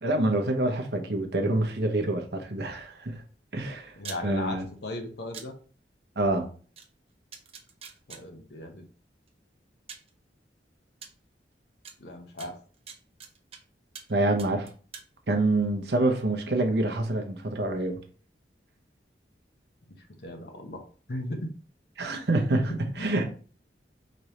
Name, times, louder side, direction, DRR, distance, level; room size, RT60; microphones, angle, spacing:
voice 1, 0.0-3.2 3.5-3.9 4.2-4.6 6.2-6.5 14.1-14.7 15.3-18.0 22.0-23.3, right 2 dB, 65° right, 0.9 m, -26 dB
voice 2, 3.7-5.5 8.1-8.9 12.0-12.6 20.2-21.5 22.1-23.2, left 1 dB, 65° left, 1.0 m, -37 dB
sound 1, 4.0-4.2 5.3-5.5 6.8-6.9 7.3-8.2 9.3-9.4 9.9-10.1 11.0-11.1 11.8-11.9 12.4-13.6 13.9-14.1 14.4-15.1, right 6 dB, 35° right, 0.6 m, -43 dB
5.2 x 3.2 x 2.9 m
head